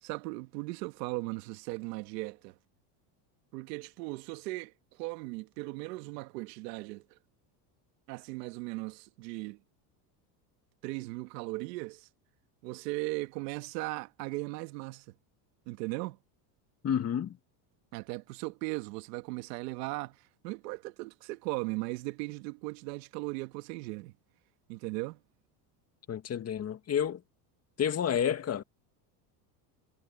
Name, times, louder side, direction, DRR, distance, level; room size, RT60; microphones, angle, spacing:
voice 1, 0.0-2.5 3.5-7.2 8.1-9.6 10.8-12.1 12.6-15.1 15.6-16.2 17.9-24.1 24.7-25.2, right 23 dB, 85° right, 1.7 m, -38 dB
voice 2, 16.8-17.4 26.1-27.2 27.8-28.6, left 8 dB, 30° left, 1.7 m, -30 dB
supercardioid pair, 125°, 48 cm